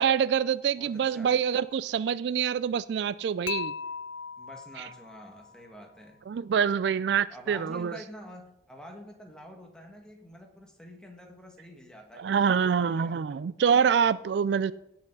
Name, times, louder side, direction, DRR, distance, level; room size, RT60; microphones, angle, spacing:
voice 1, 0.0-3.7 4.8-4.9 6.3-8.0 12.2-14.7, right 7 dB, 65° right, 0.3 m, -26 dB
voice 2, 0.7-1.3 4.4-6.2 7.3-13.4, equal, 5° left, 1.7 m, -48 dB
Dishes pots and pans / Chink clink, 3.5-5.6, left 7 dB, 90° left, 0.6 m, -37 dB
17.0 x 5.7 x 5.3 m
head